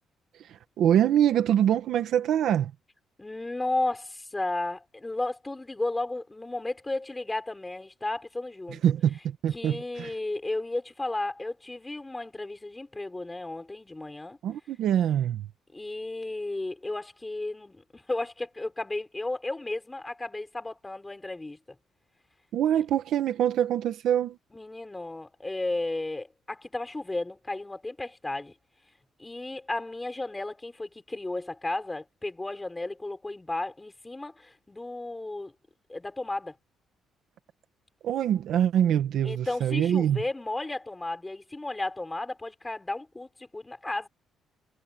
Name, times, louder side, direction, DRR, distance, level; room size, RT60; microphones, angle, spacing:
voice 1, 0.5-2.7 8.7-10.1 14.4-15.5 22.5-24.4 38.0-40.2, right 10 dB, 60° right, 1.7 m, -24 dB
voice 2, 3.2-8.9 9.5-14.4 15.7-21.6 24.5-28.5 29.2-35.5 35.9-36.6 39.2-44.1, left 2 dB, 10° left, 4.6 m, -34 dB
cardioid pair, 175°, 0 cm